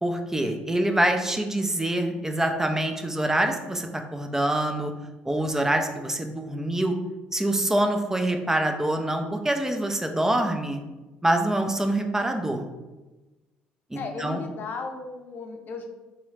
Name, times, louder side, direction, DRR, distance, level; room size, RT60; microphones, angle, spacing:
voice 1, 0.0-4.9 5.2-7.0 7.3-10.8 11.2-12.7 13.9-14.4, right 1 dB, 10° right, 4 dB, 0.5 m, -25 dB
voice 2, 13.9-15.9, left 4 dB, 50° left, 4 dB, 0.5 m, -35 dB
3.0 x 2.3 x 3.2 m, 1.1 s
hypercardioid pair, 65°, 4 cm